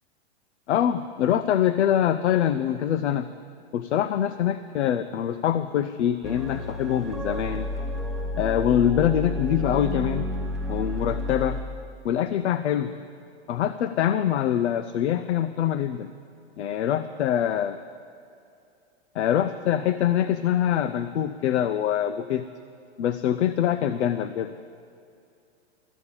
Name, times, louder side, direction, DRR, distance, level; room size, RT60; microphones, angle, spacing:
voice 1, 0.7-3.3 3.7-7.7 8.4-10.3 10.7-11.6 12.0-12.9 13.5-16.1 16.6-17.8 19.1-22.5 23.0-24.5, left 10 dB, 80° left, 12 dB, 0.6 m, -24 dB
sound 1, 6.2-11.6, left 1 dB, ahead, 0.5 m, -31 dB
13.5 x 7.0 x 9.7 m, 2.5 s
hypercardioid pair, 145°, 33 cm